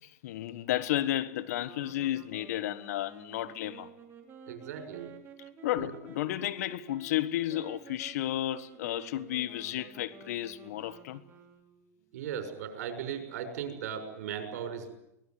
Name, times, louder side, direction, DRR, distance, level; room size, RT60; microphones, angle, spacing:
voice 1, 0.0-3.9 5.6-11.2, left 13 dB, 70° left, 1.4 m, -32 dB
sound 1, 1.6-12.0, right 5 dB, 25° right, 4.0 m, -52 dB
voice 2, 4.5-5.1 5.8-5.9 9.8-9.9 12.1-14.9, right 8 dB, 75° right, 6.5 m, -37 dB
24.0 x 19.5 x 9.5 m
hypercardioid pair, 120°, 9 cm